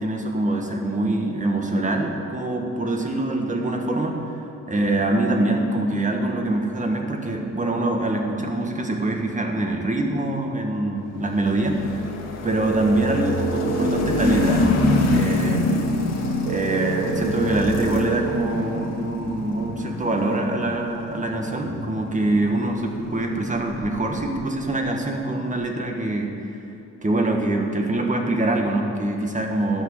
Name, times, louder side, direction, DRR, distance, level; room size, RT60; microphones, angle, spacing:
voice 1, 0.0-4.2 4.7-12.1 12.4-15.7 16.5-26.3 27.0-29.8, right 2 dB, 25° right, 2 dB, 1.7 m, -24 dB
sound 1, 11.2-24.4, left 2 dB, 60° left, 1.8 m, -26 dB
sound 2, 12.5-14.5 16.5-18.5, right 15 dB, 85° right, 0.5 m, -30 dB
12.5 x 6.1 x 8.0 m, 2.7 s
cardioid pair, 90°, 30 cm